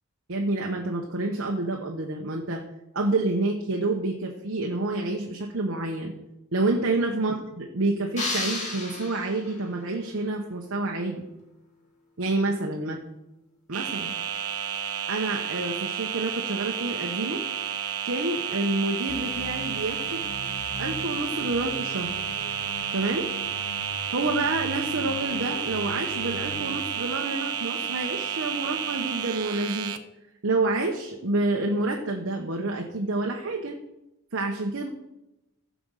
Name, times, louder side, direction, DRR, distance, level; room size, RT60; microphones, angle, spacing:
voice 1, 0.3-2.6 2.9-6.1 6.5-11.2 12.2-13.0 13.7-14.1 15.1-17.4 18.0-20.2 20.8-22.2 22.9-23.3 24.1-29.9 30.4-33.7 34.3-34.9, right 2 dB, 60° right, 2 dB, 1.0 m, -28 dB
sound 1, 8.2-9.7, left 2 dB, 35° left, 2.3 m, -32 dB
sound 2, 13.7-30.0, right 8 dB, 80° right, 0.7 m, -31 dB
sound 3, 19.1-26.8, left 3 dB, 50° left, 0.9 m, -41 dB
15.5 x 5.2 x 6.5 m, 0.94 s
head